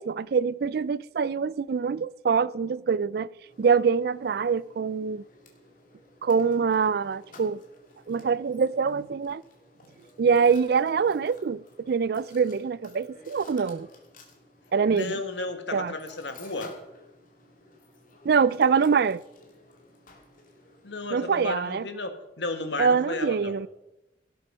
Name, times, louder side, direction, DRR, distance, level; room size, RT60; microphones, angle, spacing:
voice 1, 0.0-3.3 3.6-5.2 6.2-7.6 8.1-9.4 10.2-13.9 14.7-15.1 15.7-15.9 18.2-19.2 21.1-21.9 22.8-23.7, right 6 dB, 55° right, 0.3 m, -24 dB
Mechanisms, 3.5-21.6, left 2 dB, 45° left, 2.6 m, -54 dB
voice 2, 14.9-16.7 20.8-23.5, left 2 dB, 70° left, 1.7 m, -33 dB
17.5 x 8.0 x 5.5 m
head